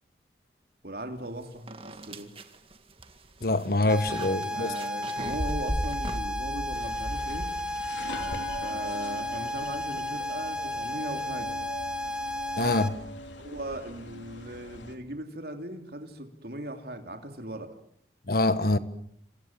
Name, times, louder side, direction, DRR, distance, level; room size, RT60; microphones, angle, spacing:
voice 1, 0.8-2.3 4.3-7.5 8.6-11.5 13.4-17.8, right 1 dB, 55° right, 3.3 m, -38 dB
sound 1, 1.2-1.3 1.7-8.0, right 1 dB, 30° right, 2.0 m, -36 dB
voice 2, 3.4-4.7 12.6-13.0 18.3-18.8, left 2 dB, 50° left, 1.5 m, -25 dB
sound 2, 3.9-12.9, left 1 dB, 5° right, 1.5 m, -33 dB
sound 3, 6.7-15.0, left 1 dB, 80° left, 3.4 m, -42 dB
28.5 x 27.0 x 7.6 m
head